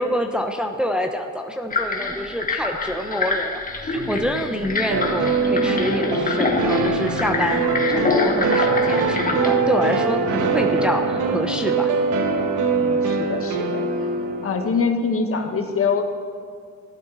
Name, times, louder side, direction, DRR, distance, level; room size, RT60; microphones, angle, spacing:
voice 1, 0.0-11.9, equal, 5° right, 3 dB, 0.9 m, -27 dB
sound 1, 1.7-9.5, left 3 dB, 25° left, 1.8 m, -25 dB
sound 2, 3.9-11.6, left 2 dB, 65° left, 3.7 m, -35 dB
sound 3, 4.9-14.8, right 4 dB, 85° right, 1.2 m, -22 dB
voice 2, 12.7-16.1, left 5 dB, 50° left, 4 dB, 1.6 m, -25 dB
14.5 x 12.0 x 4.1 m, 2.3 s
cardioid pair, 90°, 30 cm